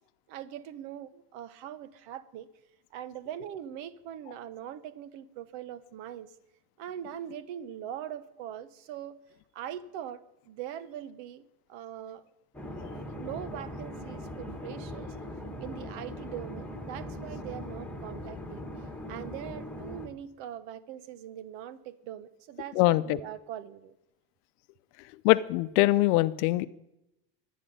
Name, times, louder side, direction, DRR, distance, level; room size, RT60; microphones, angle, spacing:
voice 1, 0.3-2.5 2.9-6.3 6.8-9.1 9.5-12.2 12.9-15.2 15.6-18.7 19.1-23.9, right 10 dB, 75° right, 15 dB, 1.1 m, -41 dB
sound 1, 12.5-20.1, left 1 dB, 5° left, 1.8 m, -40 dB
voice 2, 22.8-23.2 25.2-26.7, left 18 dB, 90° left, 16 dB, 0.7 m, -23 dB
22.5 x 8.5 x 5.4 m, 0.89 s
supercardioid pair, 100°, 45 cm